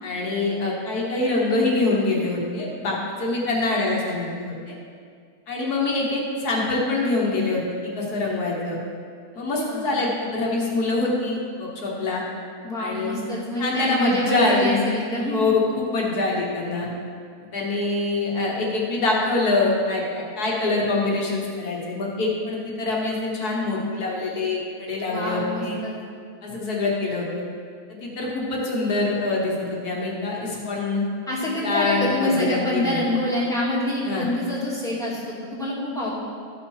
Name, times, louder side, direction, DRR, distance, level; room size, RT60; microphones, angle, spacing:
voice 1, 0.0-4.7 5.5-8.8 9.4-12.2 12.8-13.2 13.6-14.8 15.2-16.9 17.5-25.8 26.4-27.3 27.9-31.0 31.6-33.0 34.0-34.3 36.0-36.1, left 2 dB, 75° left, -3 dB, 2.0 m, -25 dB
voice 2, 9.7-10.0 12.6-15.4 25.1-25.9 31.3-36.1, left 1 dB, ahead, -8 dB, 2.3 m, -26 dB
13.5 x 5.7 x 4.8 m, 2.2 s
omnidirectional pair, 1.6 m